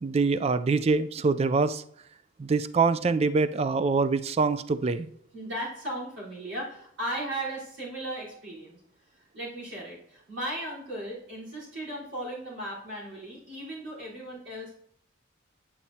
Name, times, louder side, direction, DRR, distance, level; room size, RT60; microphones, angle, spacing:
voice 1, 0.0-1.8 2.4-5.1, right 4 dB, 30° right, 13 dB, 0.3 m, -24 dB
voice 2, 5.3-8.8 9.1-14.7, right 1 dB, 65° right, -6 dB, 3.9 m, -36 dB
8.9 x 8.5 x 2.8 m, 0.70 s
head